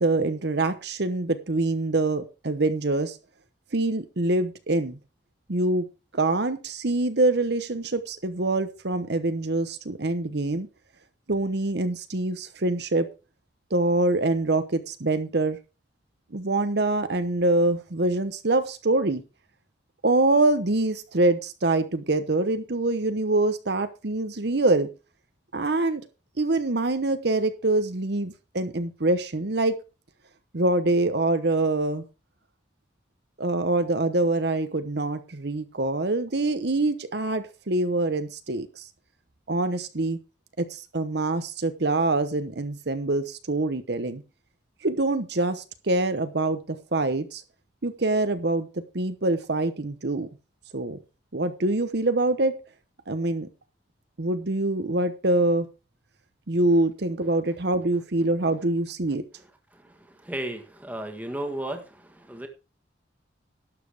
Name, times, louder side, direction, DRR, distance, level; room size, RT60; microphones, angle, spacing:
voice 1, 0.0-3.2 3.7-5.0 5.5-5.9 6.1-10.7 11.3-13.1 13.7-15.6 16.3-19.2 20.0-24.9 25.5-26.0 26.4-29.7 30.5-32.0 33.4-38.9 39.5-40.2 40.6-44.2 44.8-47.4 47.8-48.7 48.9-50.3 50.7-51.0 51.3-52.5 53.1-53.5 54.2-55.7 56.5-59.2, right 2 dB, 60° right, 10 dB, 1.0 m, -25 dB
voice 2, 60.2-61.8 62.3-62.5, right 1 dB, 10° right, 5 dB, 1.6 m, -33 dB
12.0 x 7.5 x 4.8 m, 0.30 s
head